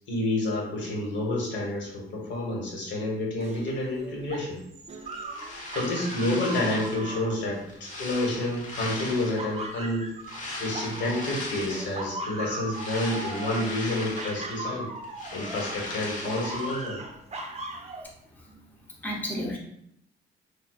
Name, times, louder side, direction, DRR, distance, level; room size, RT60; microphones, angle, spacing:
voice 1, 0.1-4.6 5.7-10.1 10.6-14.9 15.3-17.0, left 1 dB, 65° left, -1 dB, 1.5 m, -29 dB
sound 1, 3.4-8.4 8.9-11.4 11.7-15.8 16.2-18.0, right 2 dB, 35° right, 0.6 m, -39 dB
sound 2, 5.1-7.1 7.5-9.6 10.2-12.0 12.4-14.7 15.0-16.9, left 2 dB, 40° left, 1.2 m, -38 dB
voice 2, 12.8-13.2 17.7-18.6 19.0-19.6, equal, 10° left, -2 dB, 0.8 m, -36 dB
6.1 x 2.6 x 2.3 m, 0.74 s
cardioid pair, 90°, 20 cm